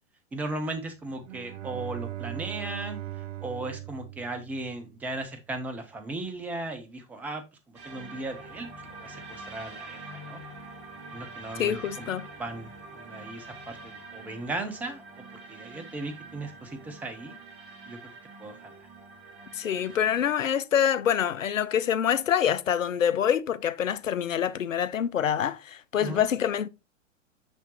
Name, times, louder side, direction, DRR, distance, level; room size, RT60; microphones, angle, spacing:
voice 1, 0.3-3.0 3.4-10.4 11.1-12.1 12.4-17.4 17.9-18.0 18.4-18.9 26.0-26.3, right 2 dB, 5° right, 0.3 m, -37 dB
Bowed string instrument, 1.1-5.2, right 14 dB, 70° right, 0.7 m, -39 dB
sound 1, 7.7-20.3, right 2 dB, 40° right, 2.2 m, -45 dB
voice 2, 11.6-12.3 19.5-26.7, left 9 dB, 85° left, 0.5 m, -26 dB
6.0 x 5.6 x 2.9 m
figure-of-eight pair, 100°, 38 cm